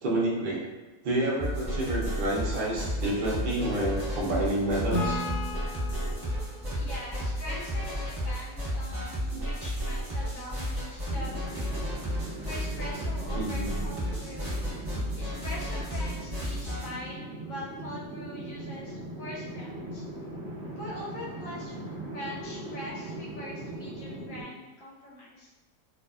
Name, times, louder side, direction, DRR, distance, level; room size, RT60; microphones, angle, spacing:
voice 1, 0.0-0.6 1.0-5.2 9.3-9.4 13.3-13.8, right 1 dB, 90° right, -4 dB, 0.4 m, -29 dB
sound 1, 1.4-16.9, equal, 20° right, 0.8 m, -33 dB
Acoustic guitar / Strum, 4.9-8.4, left 1 dB, 90° left, 1.2 m, -36 dB
voice 2, 6.7-11.8 12.4-14.6 15.1-20.1 20.8-21.7 22.1-25.5, left 1 dB, 70° left, -4 dB, 0.9 m, -42 dB
sound 2, 11.1-24.4, right 1 dB, 55° right, 0.7 m, -40 dB
2.5 x 2.4 x 2.3 m, 1.2 s
omnidirectional pair, 1.7 m